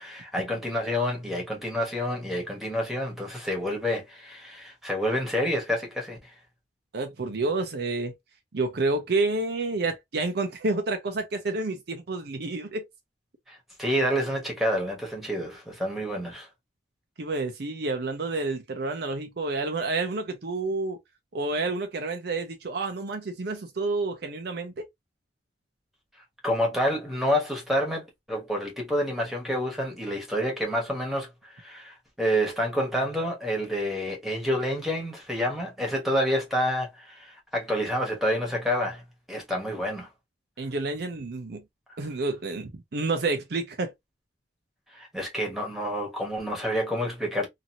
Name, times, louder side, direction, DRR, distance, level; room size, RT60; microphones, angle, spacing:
voice 1, 0.0-6.3 13.5-16.5 26.4-39.0 39.3-40.1 44.9-47.5, equal, ahead, 1.2 m, -28 dB
voice 2, 6.9-8.1 8.5-12.9 17.2-21.0 21.3-24.9 40.6-41.6 42.0-43.9, right 3 dB, 55° right, 0.5 m, -29 dB
2.9 x 2.6 x 2.5 m
head